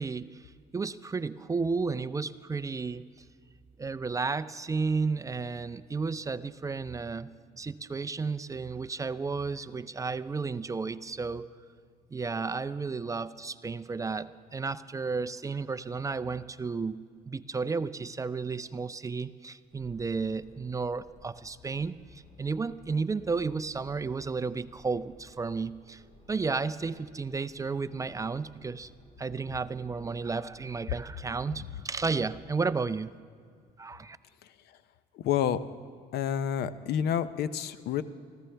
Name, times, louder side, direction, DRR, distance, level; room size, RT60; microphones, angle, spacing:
voice 1, 0.0-3.0 3.8-7.3 7.6-11.5 12.1-17.0 17.3-26.0 26.3-28.9 29.2-33.1 33.8-34.2, right 4 dB, 20° right, 13 dB, 0.4 m, -33 dB
sound 1, 19.7-32.5, left 1 dB, 30° left, 4.9 m, -57 dB
voice 2, 35.1-35.6 36.1-38.0, left 9 dB, 75° left, 14 dB, 0.7 m, -29 dB
25.0 x 15.5 x 3.4 m, 2.2 s
cardioid pair, 110°, 17 cm